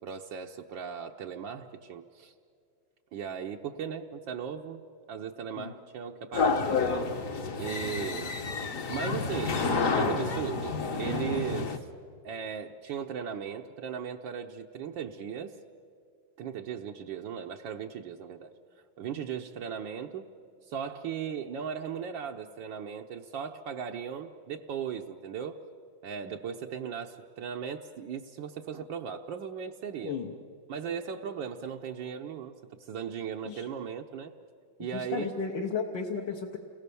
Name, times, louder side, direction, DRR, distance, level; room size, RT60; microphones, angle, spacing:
voice 1, 0.0-2.3 3.1-7.1 7.6-8.3 8.9-9.6 9.9-11.9 12.2-15.6 16.4-18.5 19.0-20.3 20.7-25.6 26.0-30.2 30.7-34.3 34.8-35.3, right 7 dB, 75° right, 2 dB, 1.5 m, -37 dB
sound 1, 6.3-11.8, left 4 dB, 45° left, 1.4 m, -29 dB
voice 2, 30.0-30.3 33.5-33.6 34.8-36.6, left 5 dB, 70° left, 0 dB, 2.0 m, -34 dB
29.5 x 21.0 x 6.9 m, 2.4 s
omnidirectional pair, 2.1 m